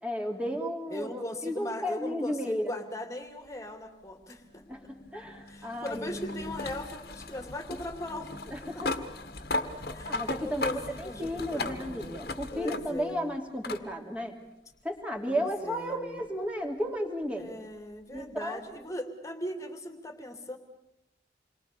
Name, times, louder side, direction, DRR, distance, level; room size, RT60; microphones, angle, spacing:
voice 1, 0.0-2.8 4.7-6.1 8.5-8.9 10.1-14.4 14.8-17.5 18.1-18.6, equal, 5° right, 2 dB, 3.1 m, -33 dB
voice 2, 0.9-4.9 5.5-8.9 9.4-9.5 9.9-13.3 15.3-16.2 17.3-20.6, left 1 dB, 15° left, 6 dB, 2.6 m, -39 dB
sound 1, 4.3-13.2 13.6-13.8 15.2-15.3 18.2-18.3, left 2 dB, 55° left, 1.8 m, -37 dB
28.0 x 23.0 x 6.8 m, 0.87 s
head